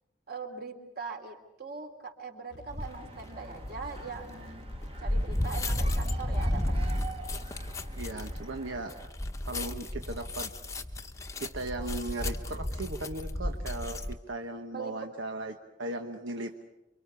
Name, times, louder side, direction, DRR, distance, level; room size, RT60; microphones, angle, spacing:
voice 1, 0.3-4.7 5.0-7.0 14.7-14.9, right 4 dB, 50° right, 4 dB, 3.1 m, -41 dB
sound 1, 2.5-8.5, left 1 dB, 70° left, 1.0 m, -49 dB
sound 2, 2.7-3.0 3.6-14.2, left 1 dB, 15° left, 0.9 m, -33 dB
sound 3, 2.8-9.1, right 3 dB, 30° right, 1.4 m, -48 dB
voice 2, 8.0-9.0 9.5-10.5 11.4-16.6, right 2 dB, 80° right, 5 dB, 1.2 m, -37 dB
28.0 x 24.0 x 6.9 m, 0.99 s
head